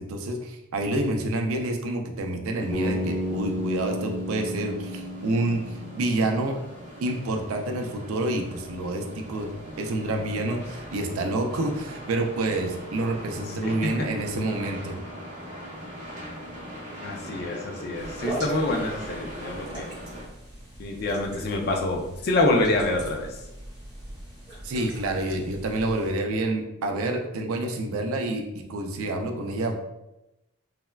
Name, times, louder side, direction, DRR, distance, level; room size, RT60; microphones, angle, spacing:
voice 1, 0.0-6.6 7.0-9.5 9.8-15.0 24.6-29.7, right 2 dB, 85° right, 4 dB, 0.4 m, -28 dB
sound 1, 2.6-20.3, equal, 35° right, 0.6 m, -41 dB
Bass guitar, 2.7-6.8, equal, 10° left, 0.7 m, -32 dB
voice 2, 13.5-14.1 17.0-19.9 20.8-23.3, left 2 dB, 45° left, 1 dB, 0.4 m, -26 dB
sound 2, 17.9-26.1, right 1 dB, 20° right, 1.1 m, -40 dB
3.3 x 2.1 x 2.2 m, 0.93 s
head